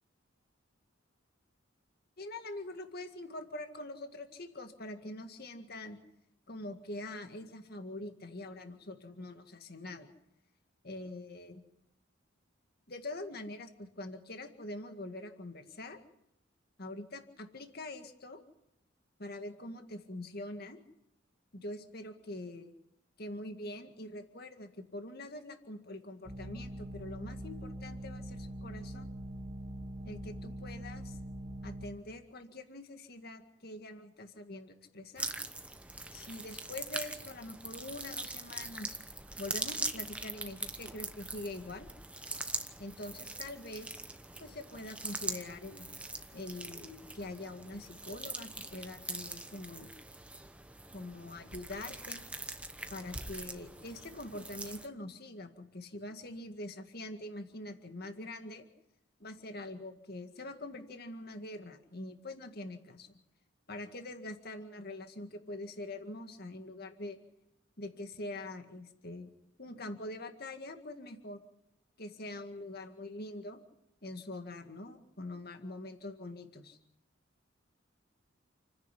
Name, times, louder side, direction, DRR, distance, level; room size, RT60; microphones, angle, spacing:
voice 1, 2.2-6.0 6.5-10.1 10.8-11.6 12.9-16.0 16.8-18.4 19.2-20.8 21.5-22.7 23.2-29.1 30.0-31.2 31.6-35.3 36.1-39.0 39.4-41.9 42.8-44.0 44.4-45.9 46.3-49.9 50.9-52.2 52.9-58.6 59.2-63.2 63.7-67.2 67.8-69.3 69.6-71.4 72.0-73.6 74.0-76.8, left 2 dB, 50° left, 6 dB, 2.0 m, -44 dB
sound 1, 26.2-31.9, right 1 dB, 25° right, 2.7 m, -43 dB
sound 2, 35.2-54.9, right 2 dB, 5° right, 1.1 m, -42 dB
29.0 x 10.5 x 10.0 m, 0.80 s
head